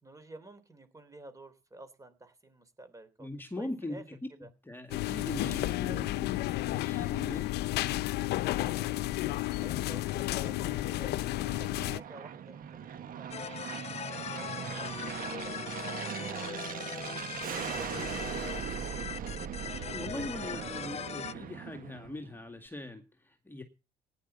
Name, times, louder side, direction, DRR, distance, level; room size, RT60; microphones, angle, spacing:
voice 1, 0.0-3.3 3.6-4.0 4.3-4.5 8.5-18.5, right 2 dB, 20° right, 12 dB, 3.3 m, -52 dB
voice 2, 3.2-4.2 4.7-7.5 19.8-23.6, left 2 dB, 10° left, 5 dB, 2.0 m, -41 dB
sound 1, 4.9-12.0, left 16 dB, 75° left, 0.7 m, -32 dB
Aircraft, 9.6-22.4, right 8 dB, 55° right, 1.5 m, -40 dB
sound 2, 13.3-21.3, left 8 dB, 40° left, 0.7 m, -40 dB
17.0 x 10.0 x 6.9 m, 0.32 s
cardioid pair, 110°, 17 cm